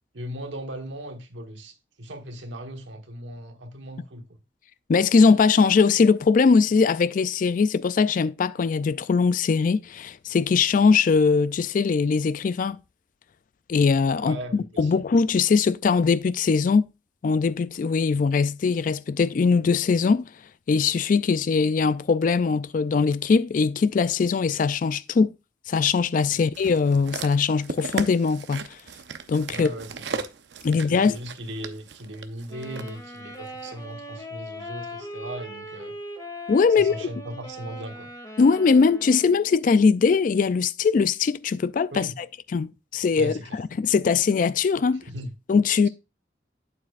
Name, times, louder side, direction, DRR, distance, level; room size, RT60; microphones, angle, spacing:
voice 1, 0.1-4.3 14.2-14.9 26.3-26.4 29.5-30.2 30.7-35.9 36.8-38.1 41.9-42.1 43.2-43.6 45.0-45.3, right 1 dB, 85° right, 1.3 m, -38 dB
voice 2, 4.9-12.8 13.7-16.9 17.2-20.3 20.7-25.3 25.7-28.7 29.3-29.7 30.6-31.2 36.5-37.1 38.4-42.3 42.5-45.0 45.5-45.9, left 5 dB, 45° left, 0.3 m, -21 dB
sound 1, 26.5-32.9 33.6-33.7, right 4 dB, 70° right, 0.7 m, -36 dB
Wind instrument woodwind instrument, 32.5-39.7, left 1 dB, 20° left, 1.9 m, -39 dB
8.7 x 7.3 x 2.5 m
head